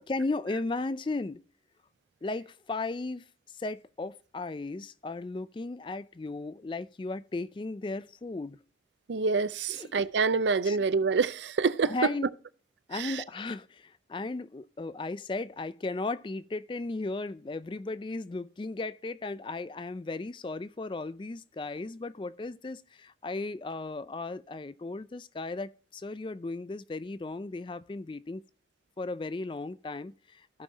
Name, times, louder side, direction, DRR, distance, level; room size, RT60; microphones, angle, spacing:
voice 1, 0.0-1.4 2.2-3.2 3.6-8.6 9.7-9.9 10.7-10.8 11.8-12.3 12.9-28.4 29.0-30.6, left 3 dB, 25° left, 0.3 m, -36 dB
voice 2, 9.1-12.1 12.9-13.2, right 4 dB, 80° right, 0.5 m, -27 dB
15.0 x 5.5 x 2.7 m
head